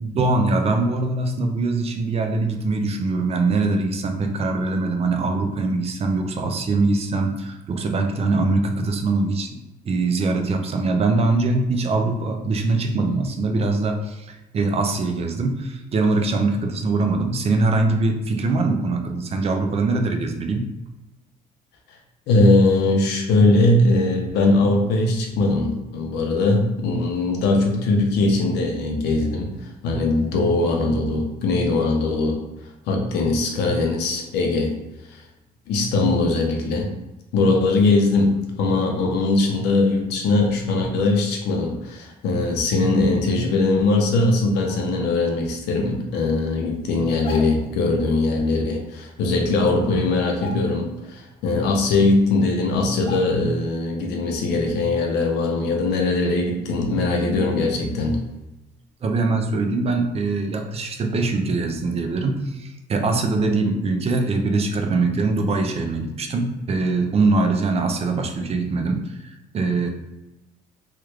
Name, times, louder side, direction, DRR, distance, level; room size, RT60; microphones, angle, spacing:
voice 1, 0.0-9.5 9.8-20.6 59.0-69.9, right 3 dB, 35° right, 4 dB, 0.5 m, -22 dB
voice 2, 22.3-29.5 29.8-32.4 32.9-34.7 35.7-36.9 37.3-58.2, left 2 dB, 80° left, 2 dB, 0.7 m, -20 dB
sound 1, 47.1-47.8 49.2-49.3 49.7-49.9 50.3-51.1 51.5-51.6 52.4-52.5 53.0-53.7 54.0-54.2, left 3 dB, 30° left, 0.4 m, -38 dB
3.2 x 2.4 x 3.1 m, 1.0 s
cardioid pair, 110°, 17 cm